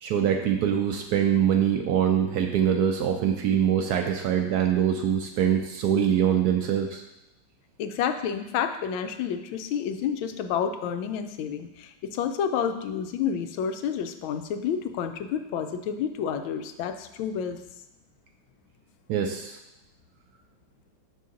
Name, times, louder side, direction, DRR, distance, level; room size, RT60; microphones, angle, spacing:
voice 1, 0.0-7.0 19.1-19.6, right 9 dB, 75° right, 3 dB, 0.9 m, -24 dB
voice 2, 7.8-17.6, left 8 dB, 85° left, 8 dB, 1.4 m, -29 dB
6.8 x 5.5 x 3.8 m, 0.91 s
omnidirectional pair, 2.1 m